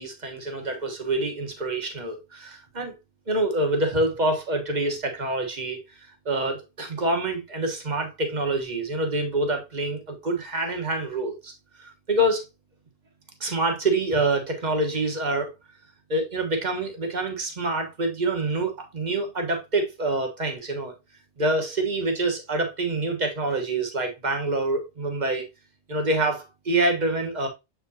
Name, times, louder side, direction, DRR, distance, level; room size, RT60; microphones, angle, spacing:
voice 1, 0.0-2.9 3.3-11.5 11.8-12.4 13.4-15.5 16.1-20.9 21.4-25.4 25.9-27.5, right 2 dB, 35° right, 1.3 m, -26 dB
7.5 x 4.7 x 2.7 m
omnidirectional pair, 1.3 m